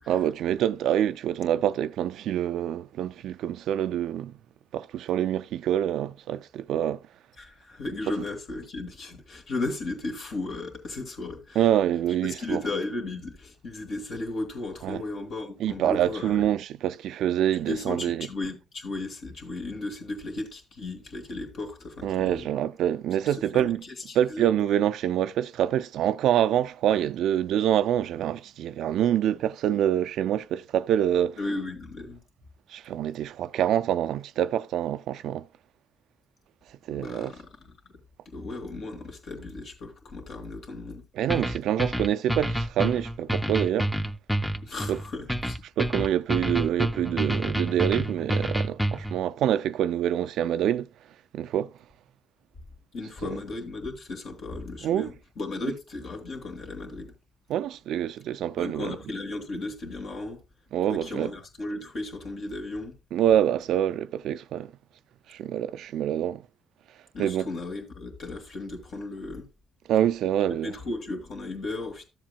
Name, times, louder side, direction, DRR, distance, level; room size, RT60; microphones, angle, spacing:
voice 1, 0.1-4.4 4.7-7.0 11.6-12.6 14.8-15.0 15.6-18.3 22.0-23.8 24.1-31.4 32.7-35.5 36.9-37.3 41.2-43.9 44.9-45.0 45.8-50.9 51.3-51.7 53.2-53.3 54.8-55.1 55.6-55.7 57.5-59.0 60.7-61.3 63.1-64.7 65.3-66.5 67.2-67.5 69.9-70.7, right 10 dB, 80° right, 0.3 m, -26 dB
voice 2, 7.4-11.6 12.2-16.5 17.7-22.5 23.3-24.5 31.4-32.2 36.9-37.5 38.2-41.0 44.6-45.6 46.0-46.1 52.9-57.1 58.6-60.4 60.9-62.9 67.1-69.5 70.5-72.0, left 2 dB, 65° left, 2.8 m, -35 dB
sound 1, 41.3-49.2, equal, ahead, 0.6 m, -28 dB
13.0 x 7.5 x 2.2 m
cardioid pair, 90°, 0 cm